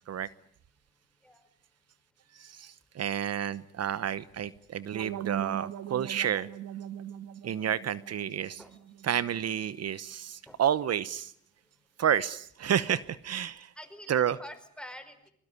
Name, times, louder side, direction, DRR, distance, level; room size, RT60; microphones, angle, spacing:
voice 1, 2.4-6.5 7.4-8.6 9.0-11.3 12.0-13.7 14.1-14.4, right 9 dB, 55° right, 17 dB, 1.1 m, -30 dB
sound 1, 4.9-9.8, right 10 dB, 80° right, 1.7 m, -41 dB
voice 2, 13.7-15.3, equal, 5° left, 9 dB, 4.7 m, -47 dB
24.5 x 22.5 x 9.9 m, 0.65 s
cardioid pair, 90°, 30 cm